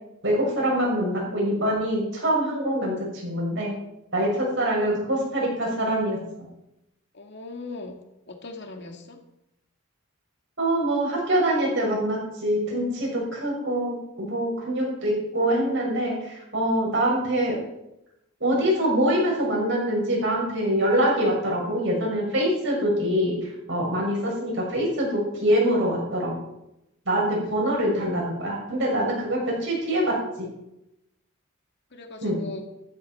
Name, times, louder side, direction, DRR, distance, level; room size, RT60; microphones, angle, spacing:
voice 1, 0.2-3.7 4.1-6.2 10.6-17.6 18.4-26.3 27.1-30.5 32.2-32.4, right 1 dB, 55° right, -1 dB, 6.2 m, -24 dB
voice 2, 4.6-5.0 7.1-8.0 8.3-9.2 31.9-32.6, left 2 dB, 55° left, 4 dB, 2.1 m, -39 dB
14.0 x 13.5 x 4.5 m, 0.86 s
head